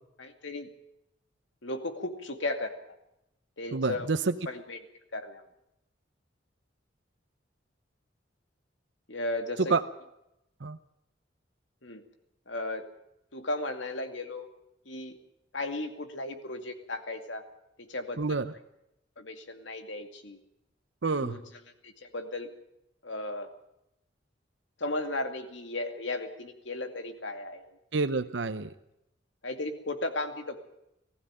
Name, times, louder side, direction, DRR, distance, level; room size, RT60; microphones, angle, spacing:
voice 1, 0.2-0.7 1.6-2.7 3.6-4.1 4.5-4.8 5.1-5.4 9.1-9.7 11.8-12.0 12.5-12.9 13.3-14.5 14.9-15.2 15.5-17.4 17.8-18.2 19.2-20.4 21.2-21.4 21.8-22.5 23.0-23.5 24.8-27.7 29.4-30.6, left 2 dB, 85° left, 6 dB, 2.4 m, -35 dB
voice 2, 3.7-4.3 9.7-9.8 10.6-10.8 18.2-18.5 21.0-21.4 27.9-28.7, right 4 dB, 80° right, 10 dB, 0.8 m, -28 dB
20.0 x 15.0 x 9.0 m, 0.85 s
head